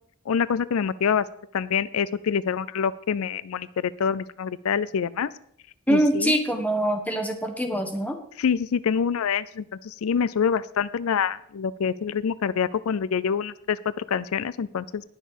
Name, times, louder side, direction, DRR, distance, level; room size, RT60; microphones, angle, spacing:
voice 1, 0.3-1.3 1.5-5.3 5.9-6.3 8.4-15.0, left 7 dB, 85° left, 18 dB, 0.4 m, -26 dB
voice 2, 5.9-8.2, right 1 dB, 5° left, 5 dB, 1.4 m, -24 dB
19.0 x 6.5 x 5.1 m, 0.67 s
head